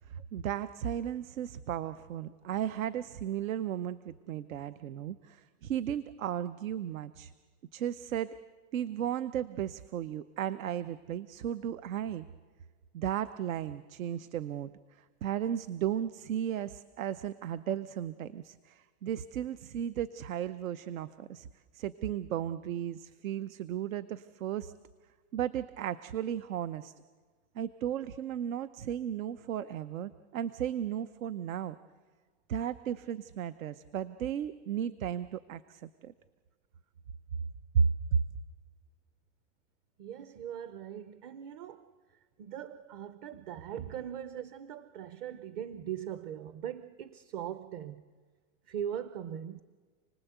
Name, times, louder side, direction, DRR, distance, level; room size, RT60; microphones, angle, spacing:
voice 1, 0.1-7.3 7.7-8.3 8.7-12.3 12.9-14.7 15.0-21.5 21.7-24.7 25.3-26.9 27.5-31.8 32.5-36.1 37.7-38.2, right 9 dB, 85° right, 0.9 m, -35 dB
voice 2, 40.0-42.0 42.4-48.0 48.7-49.6, right 9 dB, 35° right, 0.7 m, -40 dB
29.0 x 19.5 x 8.1 m
supercardioid pair, 160°, 39 cm